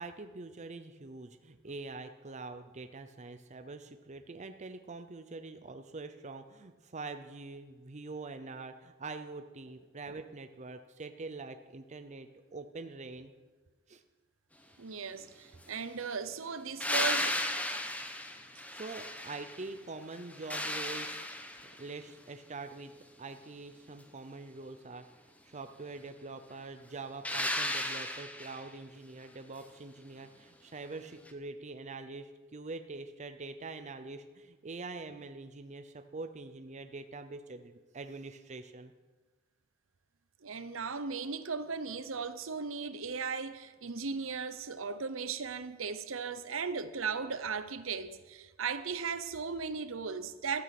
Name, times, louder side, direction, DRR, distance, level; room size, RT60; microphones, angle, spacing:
voice 1, 0.0-13.3 13.9-14.0 18.7-21.3 21.8-25.0 25.4-38.9, right 3 dB, 35° right, 0.6 m, -44 dB
voice 2, 14.8-17.4 40.4-50.6, right 5 dB, 70° right, 0.9 m, -37 dB
sound 1, 16.8-19.7 20.1-21.9 27.2-28.7 31.3-31.4, left 1 dB, 5° left, 1.0 m, -35 dB
15.5 x 12.5 x 6.0 m
head